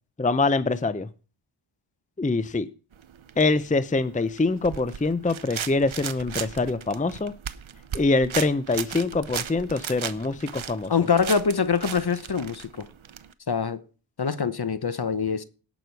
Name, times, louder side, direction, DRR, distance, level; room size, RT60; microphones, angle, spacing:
voice 1, 0.2-1.1 2.2-2.7 3.4-7.3 7.9-10.9, left 3 dB, 15° left, 0.6 m, -24 dB
sound 1, 2.9-13.3, right 8 dB, 65° right, 0.8 m, -37 dB
voice 2, 10.9-12.9 13.5-13.8 14.2-15.4, left 5 dB, 50° left, 0.9 m, -24 dB
17.5 x 6.2 x 4.6 m
wide cardioid pair, 50°, 50 cm